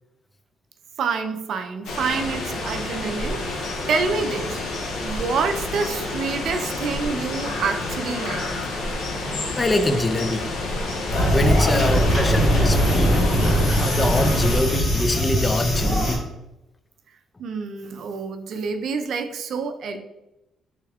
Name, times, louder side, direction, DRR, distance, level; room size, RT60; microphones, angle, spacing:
voice 1, 1.0-8.5 17.4-20.0, right 5 dB, 65° right, 7 dB, 0.4 m, -27 dB
sound 1, 1.8-14.6, left 2 dB, 80° left, 0.7 m, -29 dB
voice 2, 9.6-10.5 11.3-13.2 13.8-16.3, left 2 dB, 25° left, 9 dB, 0.3 m, -24 dB
sound 2, 11.1-16.2, equal, 55° left, 1.1 m, -20 dB
3.5 x 2.3 x 3.3 m, 0.95 s
cardioid pair, 90°, 0 cm